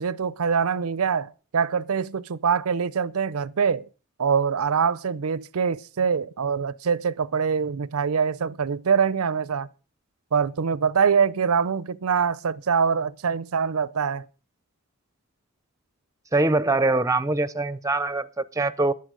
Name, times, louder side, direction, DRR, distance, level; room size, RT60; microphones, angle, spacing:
voice 1, 0.0-3.9 4.2-9.7 10.3-14.3, right 6 dB, 80° right, 0.5 m, -24 dB
voice 2, 16.3-18.9, right 2 dB, 15° right, 0.6 m, -23 dB
14.5 x 10.5 x 5.1 m
head